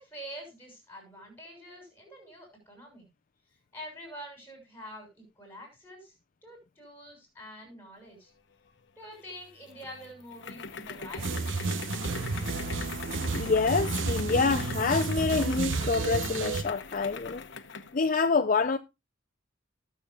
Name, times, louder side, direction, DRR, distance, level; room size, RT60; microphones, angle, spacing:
voice 1, 0.0-3.1 3.7-6.1 6.4-8.3 8.9-11.8, equal, 10° left, 6.7 m, -46 dB
sound 1, 9.2-18.0, left 5 dB, 60° left, 0.9 m, -41 dB
sound 2, 11.2-16.6, right 3 dB, 70° right, 0.9 m, -31 dB
voice 2, 13.3-17.4 17.9-18.8, left 4 dB, 40° left, 0.5 m, -27 dB
19.0 x 6.9 x 2.4 m
head